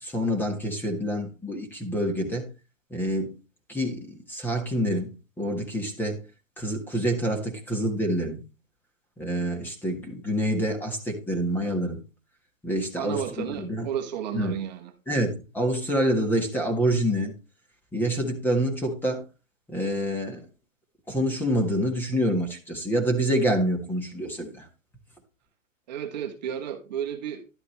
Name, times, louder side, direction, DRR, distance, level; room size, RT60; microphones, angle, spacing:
voice 1, 0.0-2.5 2.9-3.3 3.7-5.1 5.4-6.2 6.6-8.4 9.2-12.0 12.6-13.9 14.3-14.6 15.1-17.3 17.9-19.2 19.7-20.4 21.1-24.7, equal, 5° left, 3 dB, 1.5 m, -27 dB
voice 2, 13.0-14.9 25.9-27.4, right 9 dB, 35° right, 5 dB, 1.2 m, -32 dB
11.5 x 8.3 x 3.2 m, 0.30 s
hypercardioid pair, 140°, 39 cm